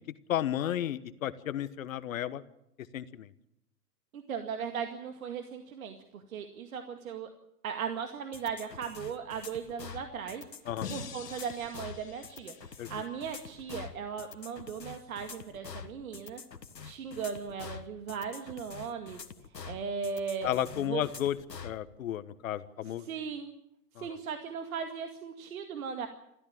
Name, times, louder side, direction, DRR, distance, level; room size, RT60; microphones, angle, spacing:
voice 1, 0.3-2.4 2.9-3.3 10.7-10.9 12.8-12.9 20.4-23.1 24.0-24.2, left 11 dB, 55° left, 15 dB, 1.3 m, -33 dB
voice 2, 4.1-7.3 7.6-10.4 10.9-16.4 16.8-19.2 19.6-20.5 20.8-21.0 23.0-23.5 24.0-26.1, right 6 dB, 60° right, 7 dB, 2.2 m, -37 dB
sound 1, 8.3-21.8, left 6 dB, 90° left, 1.8 m, -46 dB
sound 2, 10.8-13.9, left 6 dB, 70° left, 2.3 m, -46 dB
28.5 x 14.0 x 8.7 m, 0.80 s
hypercardioid pair, 120°, 48 cm